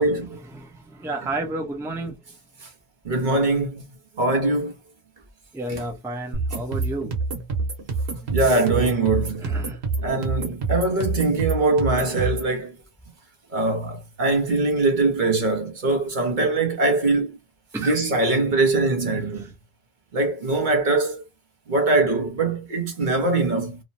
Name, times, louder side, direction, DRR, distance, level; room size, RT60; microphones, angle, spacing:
voice 1, 0.0-2.2 5.5-7.1 9.4-9.8 17.7-18.0 19.3-19.5, right 2 dB, 5° right, 0.5 m, -32 dB
voice 2, 3.0-3.8 4.2-4.7 5.7-5.8 8.3-9.5 10.0-12.7 13.5-17.3 17.8-19.4 20.1-21.2 21.7-23.8, right 2 dB, 50° right, 0.9 m, -22 dB
sound 1, 6.3-12.5, right 3 dB, 90° right, 1.3 m, -27 dB
3.0 x 2.0 x 2.6 m
omnidirectional pair, 1.1 m